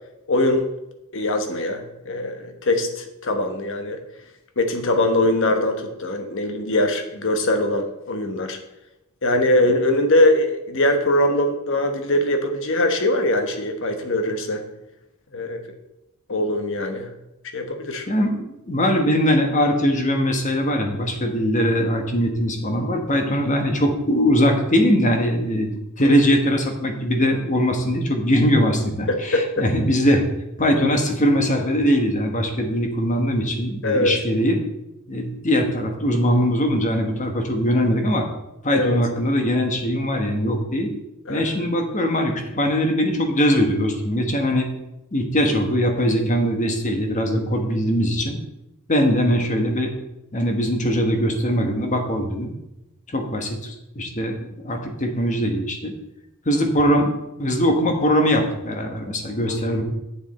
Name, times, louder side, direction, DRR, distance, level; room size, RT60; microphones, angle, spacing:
voice 1, 0.3-0.7 1.1-4.0 4.6-8.6 9.2-14.6 15.3-15.6 16.3-17.1 17.5-18.1 26.0-26.1 29.1-29.4 33.8-34.2 38.7-39.0 41.3-41.4 59.5-59.8, left 1 dB, 65° left, 6 dB, 1.2 m, -22 dB
voice 2, 18.1-25.7 26.0-30.2 30.6-34.6 35.1-38.3 38.6-40.9 41.3-44.7 45.1-48.4 48.9-49.9 50.3-52.5 53.1-55.9 56.4-57.1 57.4-59.8, equal, 35° left, 4 dB, 1.3 m, -21 dB
8.8 x 7.0 x 4.2 m, 0.91 s
head